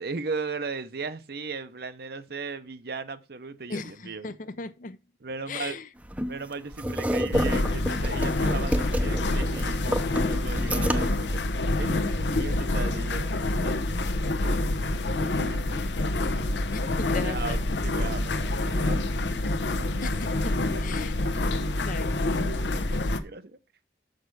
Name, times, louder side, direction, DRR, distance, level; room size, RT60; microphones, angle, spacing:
voice 1, 0.0-4.4 5.2-5.8 6.3-11.4 11.8-14.6 15.1-16.1 17.1-20.0 20.7-20.8 22.6-23.6, right 4 dB, 60° right, 0.8 m, -37 dB
voice 2, 3.7-5.0 5.5-5.9 16.7-17.6 20.0-21.1 21.8-22.2, left 3 dB, 50° left, 0.6 m, -37 dB
sound 1, 6.0-11.2, equal, 10° right, 0.6 m, -30 dB
dish washer, 7.3-23.2, left 2 dB, 85° left, 0.9 m, -27 dB
6.6 x 6.6 x 4.7 m
head